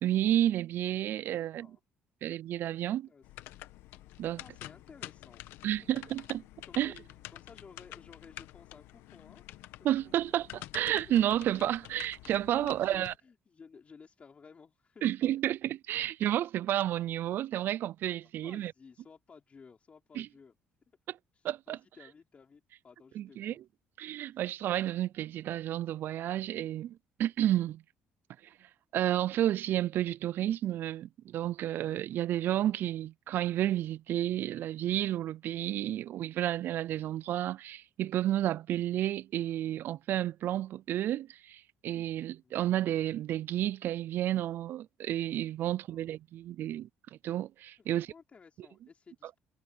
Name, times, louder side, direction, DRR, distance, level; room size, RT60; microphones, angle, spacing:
voice 1, 0.0-1.7 2.2-3.1 4.2-4.4 5.6-6.4 6.8-6.9 9.8-13.1 15.0-18.7 20.2-20.3 21.4-21.8 23.2-23.6 24.0-27.8 28.9-46.9 47.2-48.1, right 12 dB, 65° right, 0.4 m, -31 dB
voice 2, 1.3-1.8 2.9-3.2 4.4-5.4 6.7-7.0 7.3-9.9 10.2-10.4 11.1-11.2 12.5-15.0 18.2-20.5 21.3-23.6 42.4-42.6 45.6-46.1 47.8-49.4, left 5 dB, 35° left, 4.1 m, -55 dB
sound 1, 3.2-13.2, left 15 dB, 85° left, 1.4 m, -49 dB
cardioid pair, 100°, 4 cm